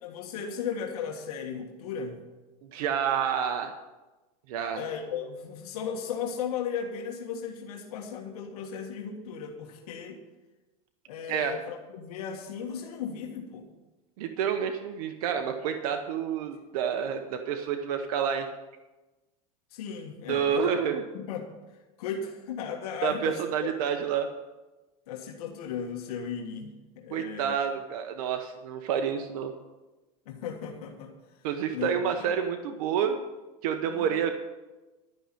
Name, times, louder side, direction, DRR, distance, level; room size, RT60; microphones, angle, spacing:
voice 1, 0.0-2.3 4.7-10.2 11.1-13.7 19.7-20.8 21.1-21.5 22.0-23.4 25.1-27.6 30.3-31.1 31.7-32.3 33.9-34.1, left 7 dB, 80° left, 2 dB, 1.7 m, -36 dB
voice 2, 2.6-3.7 4.5-4.8 11.3-11.5 14.2-18.5 20.3-21.0 23.0-24.3 27.1-29.5 31.4-33.2 33.6-34.3, right 8 dB, 75° right, 6 dB, 1.0 m, -29 dB
12.5 x 5.7 x 9.2 m, 1.1 s
supercardioid pair, 120°, 19 cm